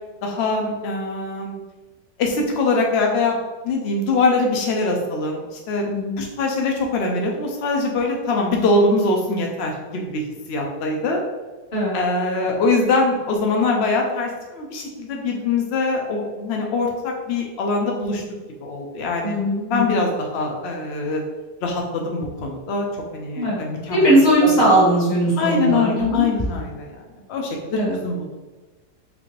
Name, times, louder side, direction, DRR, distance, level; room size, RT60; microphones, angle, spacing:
voice 1, 0.2-1.5 2.2-3.4 3.6-5.8 6.2-10.2 10.5-11.2 11.9-18.2 18.6-19.4 19.7-21.2 21.6-22.9 23.1-24.1 24.4-24.5 25.4-27.0 27.3-28.3, left 3 dB, 75° left, 1 dB, 0.6 m, -23 dB
voice 2, 5.9-6.2 11.7-11.9 19.2-20.0 23.4-23.6 23.9-26.2 27.7-28.0, right 1 dB, 40° left, -7 dB, 1.8 m, -19 dB
4.9 x 2.5 x 3.1 m, 1.3 s
omnidirectional pair, 1.7 m